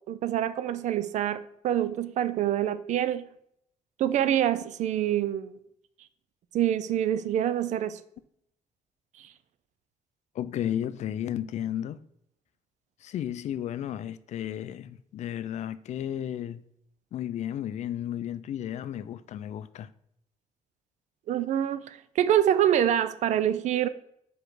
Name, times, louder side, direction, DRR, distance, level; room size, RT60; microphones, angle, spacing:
voice 1, 0.1-3.3 4.0-5.5 6.5-8.0 21.3-23.9, right 11 dB, 70° right, 0.5 m, -26 dB
voice 2, 10.4-12.0 13.0-16.6 17.1-19.9, left 10 dB, 65° left, 0.4 m, -33 dB
5.0 x 4.4 x 4.7 m
cardioid pair, 100°, 13 cm